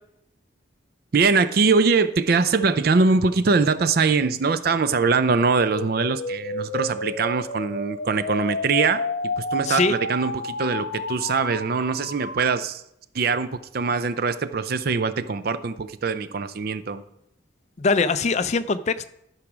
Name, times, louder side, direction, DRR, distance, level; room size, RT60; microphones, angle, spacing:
voice 1, 1.1-9.0 9.4-12.8 13.1-17.0, right 4 dB, 50° right, 13 dB, 0.5 m, -22 dB
sound 1, 5.4-12.4, left 2 dB, 60° left, 1.0 m, -31 dB
voice 2, 9.6-10.0 17.8-19.1, left 4 dB, 35° left, 12 dB, 0.4 m, -22 dB
12.0 x 4.9 x 6.1 m, 0.79 s
head